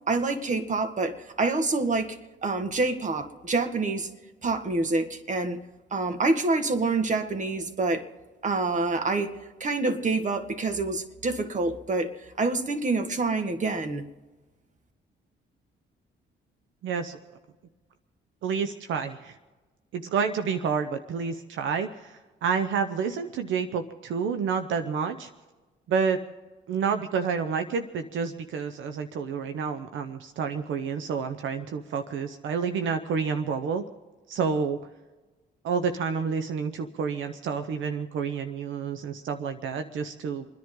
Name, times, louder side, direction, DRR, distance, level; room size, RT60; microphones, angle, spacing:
voice 1, 0.1-4.1 4.4-5.6 5.9-8.1 8.4-14.1, right 3 dB, 40° right, 1.7 m, -27 dB
voice 2, 16.8-17.2 18.4-19.4 19.9-25.3 25.9-26.2 26.7-33.8 34.3-34.8 35.6-40.5, right 6 dB, 75° right, 0.9 m, -29 dB
29.0 x 10.5 x 3.8 m
cardioid pair, 90°, 20 cm